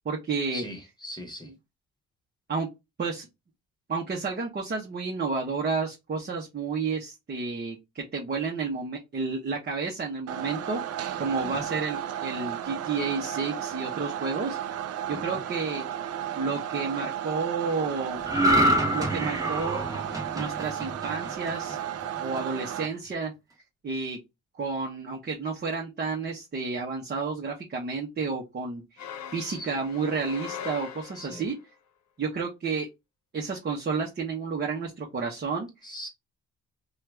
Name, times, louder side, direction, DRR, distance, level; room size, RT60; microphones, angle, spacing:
voice 1, 0.0-0.6 1.4-1.5 2.5-2.7 3.0-3.3 3.9-10.8 11.2-14.6 15.1-15.9 16.4-18.2 18.9-19.8 20.3-21.8 22.2-23.3 23.8-24.2 24.6-31.6 32.2-32.9 33.3-35.7, right 4 dB, 35° right, 1.0 m, -31 dB
voice 2, 0.5-1.5 11.4-11.5 15.1-15.4 29.5-29.7 31.2-31.4 35.8-36.1, left 1 dB, 15° left, 1.2 m, -40 dB
sound 1, 10.3-22.9, right 10 dB, 55° right, 0.4 m, -34 dB
sound 2, 18.2-21.7 22.1-22.4, equal, 10° right, 1.1 m, -26 dB
sound 3, 29.0-31.6, left 8 dB, 65° left, 0.8 m, -40 dB
2.8 x 2.4 x 3.4 m
cardioid pair, 90°, 30 cm